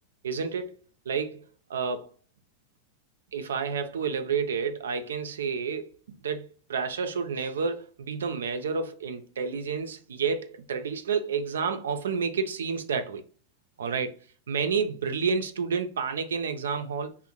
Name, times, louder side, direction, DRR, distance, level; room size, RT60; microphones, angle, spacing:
voice 1, 0.2-0.7 1.1-2.1 3.3-13.2 13.8-14.2 14.5-17.2, right 5 dB, 90° right, 0.4 m, -30 dB
2.5 x 2.0 x 2.9 m
hypercardioid pair, 115°, 0 cm